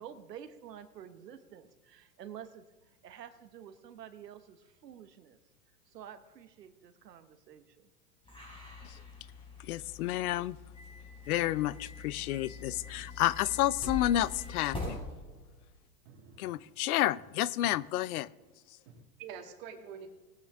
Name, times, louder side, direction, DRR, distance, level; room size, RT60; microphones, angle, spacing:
voice 1, 0.0-5.4 5.9-7.9, right 9 dB, 90° right, 10 dB, 1.1 m, -49 dB
sound 1, 8.2-15.0, left 3 dB, 10° left, 4.4 m, -44 dB
voice 2, 9.7-10.6 11.3-15.0 16.4-18.3, left 14 dB, 65° left, 20 dB, 0.6 m, -30 dB
voice 3, 16.1-16.6 18.9-20.1, right 7 dB, 55° right, 4 dB, 2.3 m, -47 dB
19.0 x 8.9 x 3.6 m, 1.3 s
hypercardioid pair, 115°, 47 cm